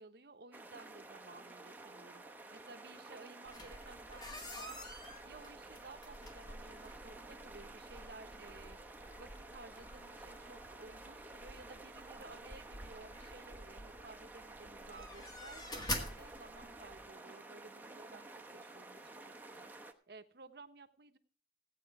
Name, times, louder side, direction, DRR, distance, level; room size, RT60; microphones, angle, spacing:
voice 1, 0.0-4.8 5.2-8.8 9.2-19.6 20.1-21.2, right 3 dB, 60° right, 9 dB, 1.0 m, -56 dB
sound 1, 0.5-19.9, right 2 dB, 10° right, 0.9 m, -52 dB
sound 2, 3.4-17.1, left 1 dB, 20° left, 1.7 m, -48 dB
15.5 x 9.1 x 4.7 m, 0.44 s
head